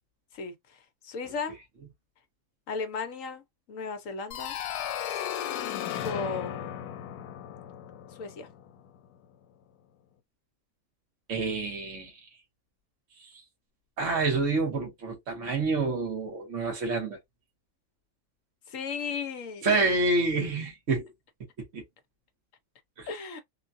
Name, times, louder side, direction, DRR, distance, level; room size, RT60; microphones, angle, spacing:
voice 1, 0.3-1.6 2.7-3.4 3.7-4.6 6.0-6.7 8.1-8.5 18.7-19.7 23.1-23.4, left 4 dB, 60° left, 1.1 m, -35 dB
sound 1, 4.3-9.0, left 10 dB, 90° left, 1.1 m, -35 dB
voice 2, 11.3-12.2 13.2-13.4 14.0-17.2 19.6-21.1 21.7-21.8 23.0-23.1, right 3 dB, 55° right, 1.5 m, -28 dB
3.8 x 2.3 x 2.6 m
omnidirectional pair, 1.6 m